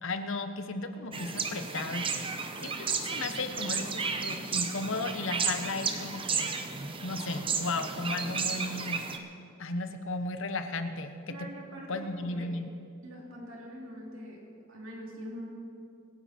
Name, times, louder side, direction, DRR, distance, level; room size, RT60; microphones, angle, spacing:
voice 1, 0.0-2.2 2.6-6.5 7.0-9.0 9.6-11.5 11.9-12.7, left 2 dB, 60° left, 8 dB, 1.0 m, -35 dB
sound 1, 1.1-9.2, right 5 dB, 25° right, 0.8 m, -33 dB
voice 2, 11.3-12.5 13.0-15.5, equal, 60° right, -2 dB, 3.1 m, -44 dB
24.5 x 10.5 x 4.4 m, 2.5 s
head